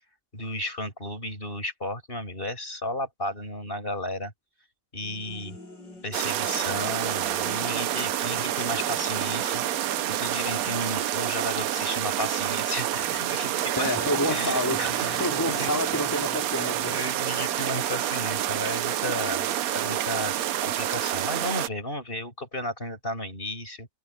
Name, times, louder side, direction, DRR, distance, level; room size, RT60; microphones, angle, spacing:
voice 1, 0.3-4.3 4.9-5.6 6.0-9.6 10.1-13.9 14.3-15.8 16.6-20.3 20.6-23.9, left 1 dB, 30° left, 7.1 m, -33 dB
sound 1, 5.0-12.1 12.4-21.0, left 2 dB, 80° left, 7.6 m, -48 dB
sound 2, 6.1-21.7, right 12 dB, 65° right, 1.0 m, -28 dB
voice 2, 13.8-16.9, left 1 dB, 10° left, 2.6 m, -28 dB
omnidirectional pair, 1.9 m